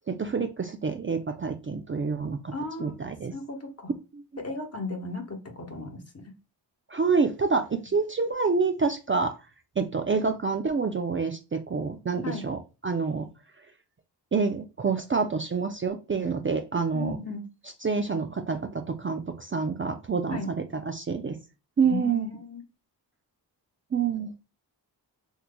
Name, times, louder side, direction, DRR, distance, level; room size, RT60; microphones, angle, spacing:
voice 1, 0.1-2.5 2.8-3.3 6.9-9.3 9.8-13.3 14.3-17.2 17.8-21.4 21.8-22.3 23.9-24.3, right 5 dB, 30° right, 5 dB, 0.5 m, -27 dB
voice 2, 2.5-3.0 3.3-3.9 4.4-6.2 12.2-12.5 16.9-17.5 20.3-20.5 21.8-22.6, left 3 dB, 35° left, 4 dB, 1.1 m, -35 dB
3.7 x 2.9 x 2.2 m, 0.30 s
cardioid pair, 45°, 46 cm